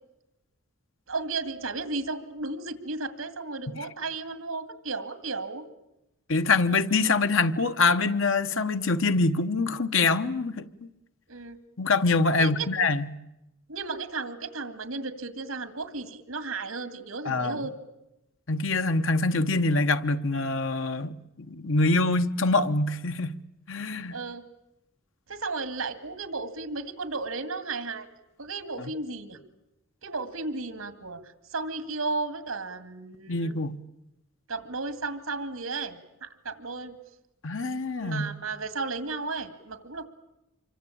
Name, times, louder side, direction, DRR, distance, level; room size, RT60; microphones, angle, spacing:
voice 1, 1.1-5.6 11.3-11.6 12.4-12.7 13.7-17.8 24.1-24.4 25.3-28.1 28.4-29.4 30.0-31.2 31.5-33.6 34.5-37.0 38.0-40.1, right 3 dB, 90° right, 2.3 m, -34 dB
voice 2, 6.3-10.9 11.8-13.1 17.2-17.6 18.5-21.2 21.5-23.4 23.7-24.1 33.3-33.8 37.4-38.3, left 3 dB, 65° left, 1.1 m, -25 dB
26.5 x 24.0 x 8.7 m
head